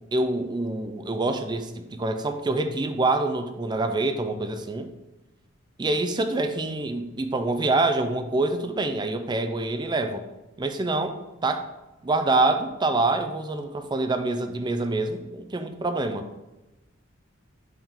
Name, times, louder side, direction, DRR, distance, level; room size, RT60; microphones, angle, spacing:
voice 1, 0.1-4.9 5.8-10.2 10.6-11.7 12.0-16.3, right 2 dB, 20° right, 8 dB, 0.4 m, -26 dB
7.1 x 3.7 x 3.7 m, 1.0 s
head